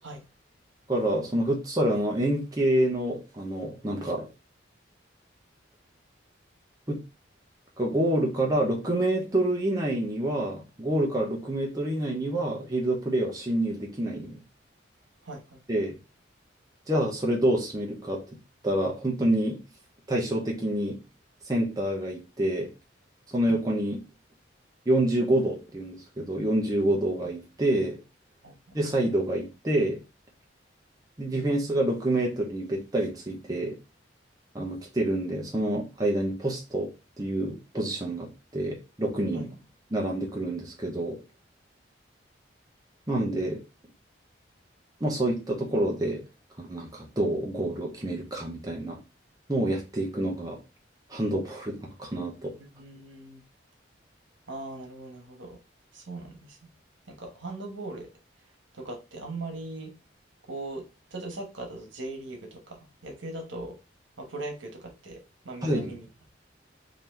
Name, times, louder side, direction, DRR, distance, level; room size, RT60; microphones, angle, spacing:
voice 1, 0.9-4.3 6.9-7.0 7.8-14.4 15.7-16.0 16.9-18.2 18.6-19.6 20.1-21.0 21.5-22.7 23.3-24.0 24.9-28.0 28.7-30.0 31.2-33.8 34.5-36.9 37.2-39.5 39.9-41.2 43.1-43.6 45.0-46.2 46.6-49.0 49.5-50.6 51.1-52.5 65.6-65.9, right 1 dB, 20° right, 0.8 m, -27 dB
voice 2, 15.2-15.6 28.4-28.9 39.3-39.4 52.6-53.4 54.5-55.6 55.9-56.6 57.1-58.1 58.7-59.9 60.4-60.8 61.1-63.7 64.2-65.2 65.4-66.1, right 2 dB, 85° right, 1.2 m, -39 dB
3.9 x 2.8 x 3.2 m
head